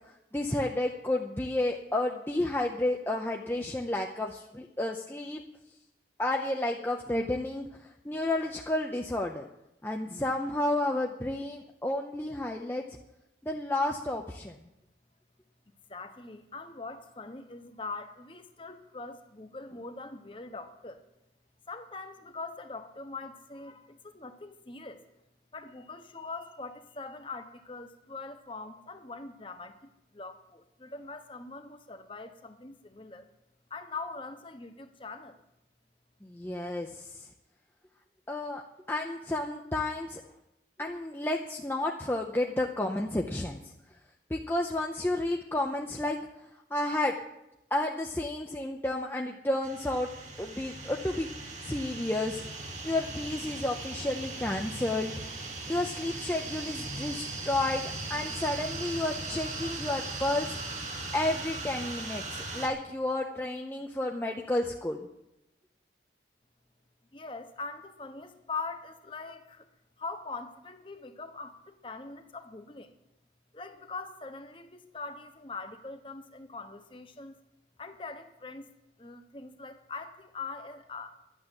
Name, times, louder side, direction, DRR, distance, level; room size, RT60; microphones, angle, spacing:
voice 1, 0.1-5.4 6.2-7.7 8.0-9.4 9.8-12.8 13.4-14.5 36.2-37.2 38.3-38.6 38.9-40.2 40.8-43.6 44.3-46.2 46.7-47.2 47.7-50.1 50.4-51.3 51.6-52.4 52.8-55.2 55.7-60.6 60.8-65.0, left 1 dB, 10° left, 1 dB, 0.6 m, -31 dB
voice 2, 15.9-21.0 21.7-25.0 25.5-33.3 33.7-35.4 67.1-69.7 70.0-72.9 73.5-77.4 77.8-78.7 79.0-81.2, left 3 dB, 30° left, 7 dB, 1.0 m, -42 dB
sound 1, 49.6-62.7, right 3 dB, 40° right, 1.5 m, -38 dB
11.5 x 7.3 x 9.8 m, 0.87 s
head